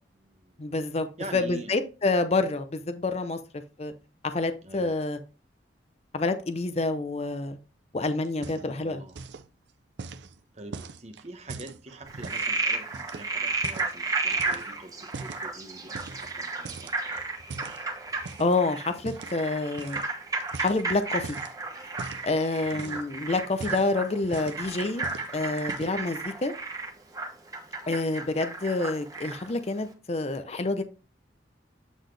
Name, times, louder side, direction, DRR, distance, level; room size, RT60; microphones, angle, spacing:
voice 1, 0.0-0.6 1.2-1.7 4.6-4.9 8.7-9.2 10.5-17.1 22.7-23.0, right 1 dB, 35° right, 1.0 m, -44 dB
voice 2, 0.6-1.1 1.3-3.9 4.2-5.2 6.1-7.6 7.9-9.0 18.4-20.0 20.6-21.4 22.2-25.0 25.3-26.5 27.9-30.8, left 2 dB, 35° left, 0.5 m, -28 dB
sound 1, 8.2-8.8 9.1-9.5 10.0-12.5 12.9-14.0 14.3-15.5 15.9-16.4 16.6-18.5 19.0-19.4 19.8-20.1 20.4-21.5 22.0-22.3 22.7-23.1 23.5-24.7 25.0-25.3 25.6-26.1, right 4 dB, 70° right, 0.5 m, -41 dB
Frog, 12.1-29.5, right 3 dB, 20° right, 1.2 m, -33 dB
8.2 x 4.0 x 3.2 m
head